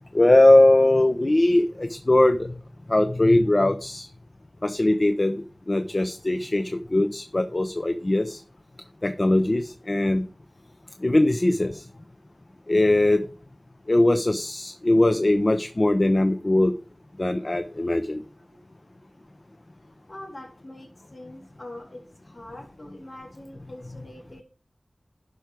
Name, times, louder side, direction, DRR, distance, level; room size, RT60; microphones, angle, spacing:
voice 1, 0.1-2.6 2.9-4.1 4.6-8.4 9.0-10.3 11.0-11.9 12.7-13.2 13.9-16.7 17.2-18.2, left 1 dB, 40° left, 9 dB, 0.6 m, -20 dB
voice 2, 18.1-18.6 20.1-24.4, left 1 dB, 55° left, -1 dB, 3.5 m, -43 dB
11.5 x 4.7 x 4.7 m, 0.38 s
wide cardioid pair, 55°, 0 cm